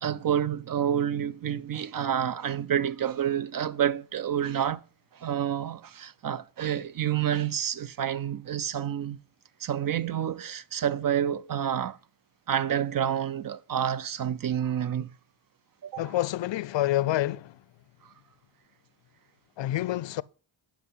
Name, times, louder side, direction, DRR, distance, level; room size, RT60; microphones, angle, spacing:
voice 1, 0.0-4.8 5.1-9.2 9.6-12.0 12.5-15.1 15.8-16.1, right 9 dB, 45° right, 0.5 m, -29 dB
voice 2, 16.0-17.6 19.6-20.2, left 14 dB, 65° left, 0.5 m, -28 dB
9.7 x 5.8 x 5.6 m
cardioid pair, 60°, 48 cm